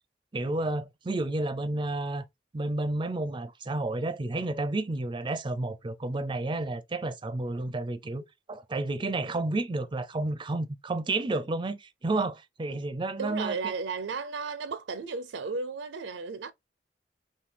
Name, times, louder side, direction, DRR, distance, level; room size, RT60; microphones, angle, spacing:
voice 1, 0.3-2.2 2.5-8.2 8.5-13.7, right 2 dB, 25° right, 0.5 m, -31 dB
voice 2, 13.2-16.5, right 4 dB, 80° right, 0.5 m, -34 dB
5.8 x 2.3 x 3.3 m
head